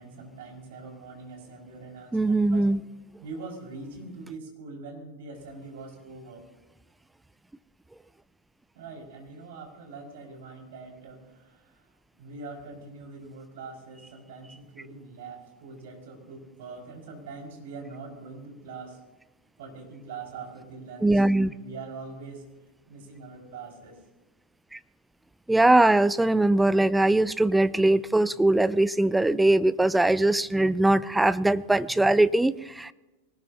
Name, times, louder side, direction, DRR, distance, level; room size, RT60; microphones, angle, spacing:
voice 1, 0.0-2.7 3.2-6.4 8.7-11.9 12.1-19.0 19.6-22.4 22.9-24.0, right 4 dB, 55° right, 1 dB, 5.5 m, -43 dB
voice 2, 2.1-2.8 21.0-21.5 24.7-24.8 25.5-32.9, right 2 dB, 5° right, 17 dB, 0.4 m, -21 dB
23.5 x 19.5 x 2.8 m, 1.1 s
figure-of-eight pair, 90°, 0 cm